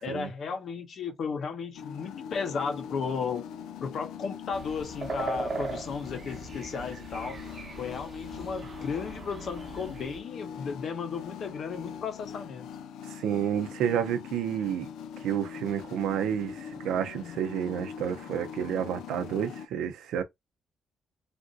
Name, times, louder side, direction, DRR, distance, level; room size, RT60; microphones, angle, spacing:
voice 1, 0.0-3.5 3.8-7.4 7.8-12.7, left 5 dB, 60° left, 0.7 m, -34 dB
sound 1, 1.7-19.7, left 8 dB, 85° left, 0.4 m, -42 dB
sound 2, 4.5-10.2, right 3 dB, 35° right, 0.9 m, -39 dB
voice 2, 13.1-14.9 15.2-20.2, right 9 dB, 85° right, 0.6 m, -30 dB
3.4 x 2.5 x 2.4 m
cardioid pair, 90°, 0 cm